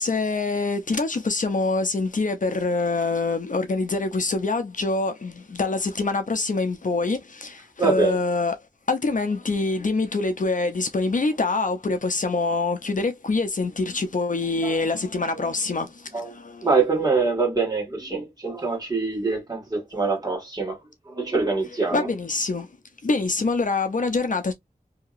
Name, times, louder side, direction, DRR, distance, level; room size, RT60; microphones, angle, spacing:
voice 1, 0.0-8.6 8.9-16.7 21.9-22.7 23.0-24.5, left 3 dB, 60° left, 0.5 m, -25 dB
voice 2, 7.8-8.2 14.6-14.8 15.3-15.4 16.1-20.8 21.1-22.1, right 4 dB, 25° right, 1.7 m, -25 dB
2.8 x 2.8 x 2.4 m
wide cardioid pair, 65°, 15 cm